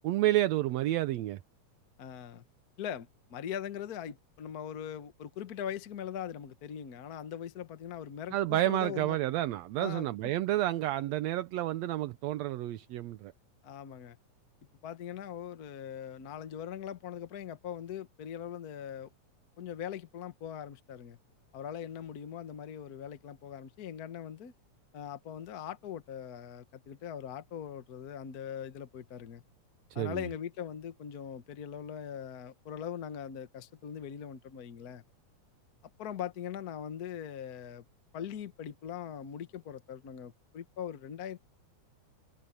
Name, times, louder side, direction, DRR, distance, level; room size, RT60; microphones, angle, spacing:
voice 1, 0.0-1.4 8.3-13.3 29.9-30.2, right 15 dB, 70° right, 1.7 m, -30 dB
voice 2, 2.0-2.4 2.8-9.2 9.8-10.3 13.6-14.2 14.8-19.1 19.6-21.2 21.5-24.5 24.9-29.4 29.9-35.0 36.0-37.8 38.1-41.4, left 9 dB, 85° left, 0.8 m, -41 dB
omnidirectional pair, 3.7 m